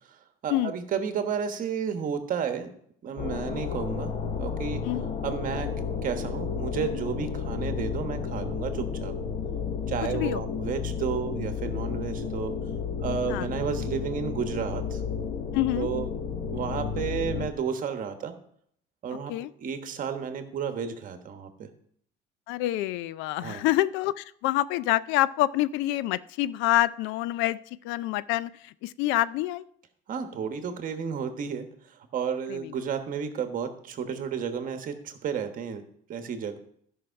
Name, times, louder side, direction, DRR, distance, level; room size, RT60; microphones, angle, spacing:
voice 1, 0.4-2.7 3.0-4.1 4.4-4.8 5.2-5.7 6.0-9.1 9.9-12.5 13.0-15.0 15.8-16.1 16.5-18.3 19.0-19.3 19.6-21.7 23.4-23.6 30.1-35.8 36.1-36.6, right 7 dB, 45° right, 8 dB, 1.3 m, -32 dB
sound 1, 3.2-17.5, left 6 dB, 35° left, 1.0 m, -32 dB
voice 2, 15.5-15.9 19.3-19.5 22.5-27.6 27.8-29.6 32.5-32.7, left 15 dB, 80° left, 18 dB, 0.5 m, -27 dB
12.5 x 5.6 x 5.7 m, 0.66 s
cardioid pair, 130°, 19 cm